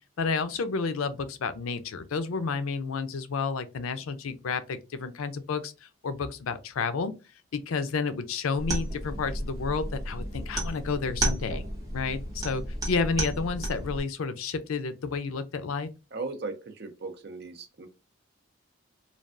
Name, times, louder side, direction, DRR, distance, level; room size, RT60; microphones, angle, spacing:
voice 1, 0.2-7.1 7.5-11.6 11.9-15.9, left 4 dB, 85° left, 0.5 m, -31 dB
sound 1, 8.6-14.0, right 1 dB, 15° right, 0.8 m, -32 dB
voice 2, 16.1-17.9, right 3 dB, 50° right, 0.5 m, -37 dB
3.2 x 2.3 x 2.4 m
head